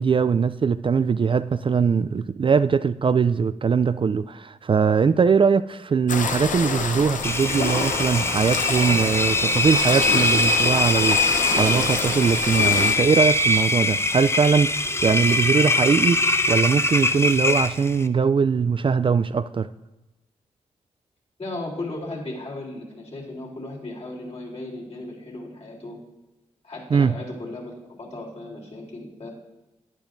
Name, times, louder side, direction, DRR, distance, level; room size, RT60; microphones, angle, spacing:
voice 1, 0.0-19.7 26.9-27.2, right 6 dB, 40° right, 0.4 m, -21 dB
sound 1, 6.1-12.9, left 4 dB, 75° left, 0.9 m, -27 dB
Engine, 7.2-18.1, left 2 dB, 20° left, 0.6 m, -22 dB
voice 2, 21.4-26.0 26.6-27.7 28.0-29.3, left 2 dB, 50° left, 3.5 m, -36 dB
12.0 x 9.6 x 2.6 m
cardioid pair, 45°, 13 cm